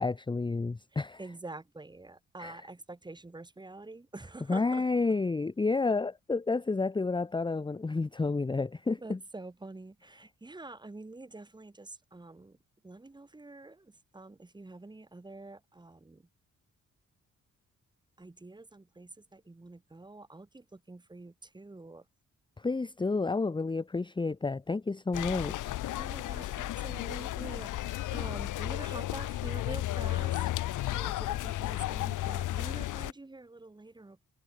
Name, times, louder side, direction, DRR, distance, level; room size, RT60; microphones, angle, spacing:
voice 1, 0.0-1.2 2.4-2.6 4.5-9.2 22.6-25.7, left 3 dB, 15° left, 1.1 m, -30 dB
voice 2, 0.9-4.9 9.0-12.6 12.8-16.2 18.2-22.0 25.9-34.2, right 2 dB, 15° right, 5.6 m, -46 dB
sound 1, 25.1-33.1, left 15 dB, 90° left, 0.7 m, -33 dB
wide cardioid pair, 155°, 30 cm